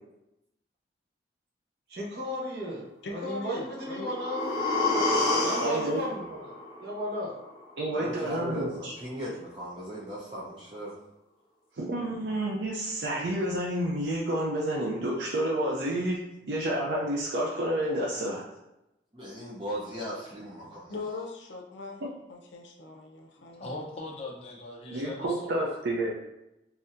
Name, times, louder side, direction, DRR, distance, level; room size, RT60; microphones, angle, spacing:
voice 1, 1.9-5.0 5.4-6.6 6.8-7.3, equal, 60° right, -3 dB, 0.9 m, -35 dB
voice 2, 3.0-4.1 20.9-22.0 22.3-23.8, left 3 dB, 90° left, 1 dB, 0.6 m, -40 dB
sound 1, 3.6-7.6 8.0-8.1, left 2 dB, 55° left, 1.1 m, -29 dB
voice 3, 5.6-6.0 7.8-8.9 11.8-16.2 16.5-18.4 24.9-26.1, right 1 dB, 75° right, -3 dB, 0.5 m, -29 dB
voice 4, 7.9-10.9 19.1-21.0, equal, 25° right, -9 dB, 0.6 m, -38 dB
voice 5, 23.6-25.6, left 2 dB, 35° left, -3 dB, 0.6 m, -40 dB
4.0 x 2.7 x 2.5 m, 0.90 s
head